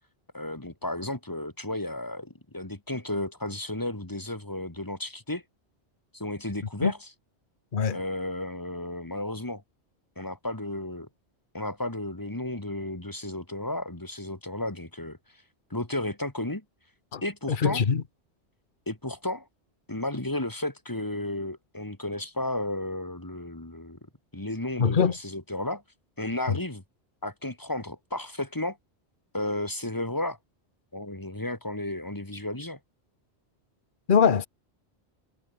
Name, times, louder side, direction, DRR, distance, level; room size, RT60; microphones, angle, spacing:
voice 1, 0.3-5.4 6.1-7.0 7.9-9.6 10.2-11.1 11.5-15.2 15.7-16.6 17.2-17.8 18.9-19.5 19.9-24.0 24.3-25.8 26.2-26.8 27.2-28.8 29.3-30.4 30.9-32.8, left 1 dB, 20° left, 2.4 m, -33 dB
voice 2, 17.5-18.0 24.8-25.2 26.5-26.6 34.1-34.5, left 6 dB, 50° left, 1.3 m, -22 dB
omnidirectional pair, 1.1 m